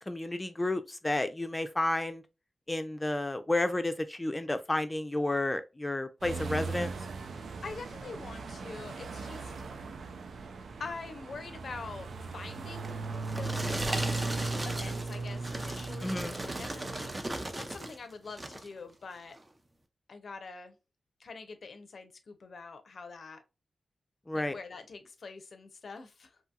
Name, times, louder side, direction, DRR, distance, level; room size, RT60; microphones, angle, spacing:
voice 1, 0.1-2.2 2.7-6.9 16.0-16.4 24.3-24.6, left 2 dB, 20° left, 0.4 m, -31 dB
sound 1, 6.2-17.2, right 3 dB, 85° right, 0.3 m, -38 dB
voice 2, 7.3-9.5 10.8-14.0 14.6-17.2 17.6-19.4 20.1-20.8 21.2-23.4 24.3-26.3, left 4 dB, 70° left, 0.5 m, -45 dB
sound 2, 12.8-18.0 18.3-18.7 19.3-19.4, right 1 dB, 25° right, 0.5 m, -37 dB
2.7 x 2.7 x 2.2 m
cardioid pair, 70°, 0 cm